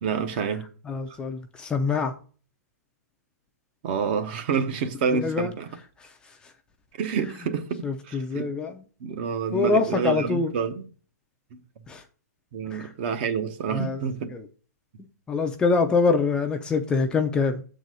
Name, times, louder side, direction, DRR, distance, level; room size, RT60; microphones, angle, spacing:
voice 1, 0.0-0.7 1.1-1.2 3.8-5.7 7.0-8.5 9.0-10.9 12.5-14.3, right 6 dB, 35° right, 0.9 m, -28 dB
voice 2, 0.8-2.1 5.1-5.5 6.0-6.5 7.2-7.3 7.8-8.8 9.5-10.5 11.9-12.0 12.7-12.9 13.7-14.0 14.3-14.5 15.3-17.6, left 4 dB, 10° left, 0.5 m, -25 dB
7.4 x 4.0 x 6.2 m
hypercardioid pair, 160°, 9 cm